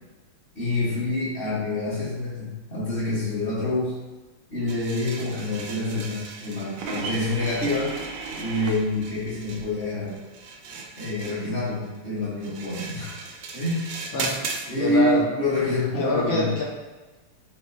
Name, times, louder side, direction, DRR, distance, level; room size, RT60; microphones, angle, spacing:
voice 1, 0.5-3.9 4.5-7.9 8.3-10.2 11.0-13.2 13.5-13.9 14.7-16.5, left 2 dB, 30° left, -9 dB, 1.2 m, -27 dB
sound 1, 4.7-14.7, right 4 dB, 70° right, 1.1 m, -38 dB
sound 2, 6.8-9.9 10.3-14.5, right 4 dB, 90° right, 1.5 m, -37 dB
voice 2, 14.1-14.4 14.8-15.3 16.0-16.6, left 1 dB, 70° left, -4 dB, 1.8 m, -25 dB
4.8 x 3.5 x 2.7 m, 1.2 s
omnidirectional pair, 2.3 m